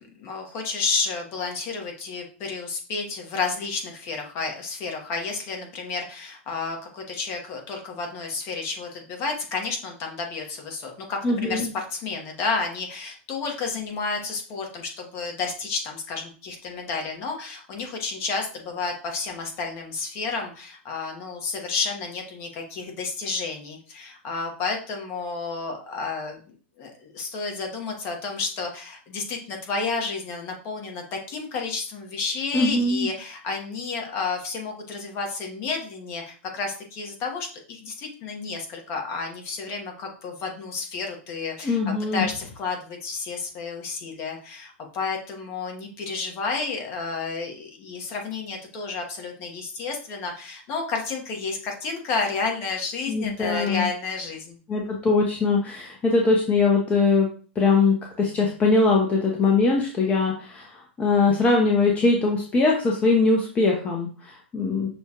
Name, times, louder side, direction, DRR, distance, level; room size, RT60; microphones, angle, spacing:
voice 1, 0.1-26.4 26.8-41.8 42.1-54.6, left 4 dB, 40° left, 2 dB, 1.3 m, -31 dB
voice 2, 11.2-11.7 32.5-33.1 41.6-42.2 53.1-53.9 54.7-57.3 57.6-64.9, left 3 dB, 20° left, 0 dB, 0.8 m, -21 dB
6.1 x 2.4 x 2.9 m, 0.39 s
hypercardioid pair, 115°, 6 cm